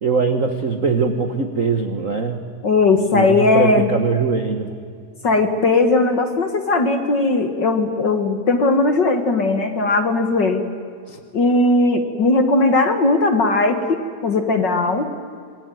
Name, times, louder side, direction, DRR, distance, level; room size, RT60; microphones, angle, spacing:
voice 1, 0.0-2.4 3.1-4.7 11.1-11.2, right 4 dB, 50° right, 7 dB, 1.0 m, -21 dB
voice 2, 2.6-3.9 5.2-10.6 11.3-15.1, left 3 dB, 45° left, 7 dB, 1.8 m, -18 dB
27.5 x 21.0 x 9.3 m, 2.2 s
omnidirectional pair, 3.4 m